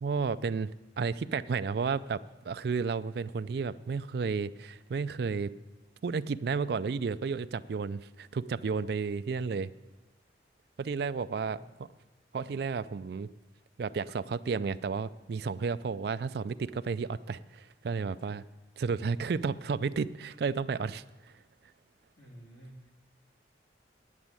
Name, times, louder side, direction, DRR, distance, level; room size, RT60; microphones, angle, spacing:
voice 1, 0.0-0.7 1.0-5.5 6.0-9.7 10.8-11.6 12.3-13.3 13.8-18.4 18.8-21.3, right 5 dB, 55° right, 13 dB, 0.3 m, -32 dB
voice 2, 11.4-11.8 21.0-21.2 22.2-22.9, right 1 dB, 85° left, -1 dB, 2.9 m, -52 dB
9.6 x 7.0 x 8.8 m, 1.1 s
head